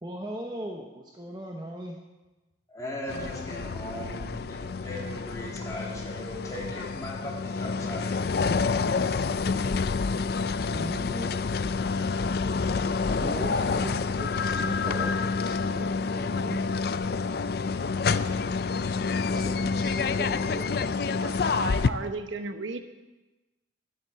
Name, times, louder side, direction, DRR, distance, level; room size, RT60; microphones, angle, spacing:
voice 1, 0.0-2.0 10.7-11.4 13.1-16.6 19.3-20.7, right 1 dB, 20° right, 1 dB, 0.9 m, -38 dB
voice 2, 2.7-8.2 9.0-9.2, left 1 dB, 15° left, -4 dB, 3.0 m, -38 dB
sound 1, 3.1-21.9, left 4 dB, 55° left, 0.4 m, -28 dB
voice 3, 21.2-22.8, right 3 dB, 85° right, 8 dB, 0.9 m, -34 dB
12.5 x 7.8 x 7.6 m, 1.1 s
head